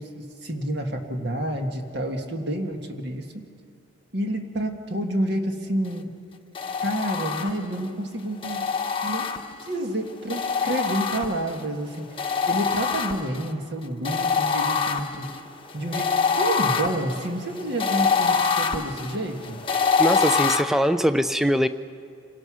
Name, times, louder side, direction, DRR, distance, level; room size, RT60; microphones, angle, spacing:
voice 1, 0.0-3.4 4.1-6.1 6.8-8.6 9.0-9.3 9.7-12.1 12.5-15.3 15.7-16.1 16.4-19.6, right 1 dB, 55° right, 3 dB, 1.7 m, -29 dB
sound 1, 6.6-7.8 8.4-9.8 10.3-11.6 12.2-13.5 14.0-20.6, left 5 dB, 25° left, 0.9 m, -25 dB
voice 2, 20.0-21.7, equal, ahead, 11 dB, 0.4 m, -22 dB
27.0 x 17.5 x 6.2 m, 2.4 s
head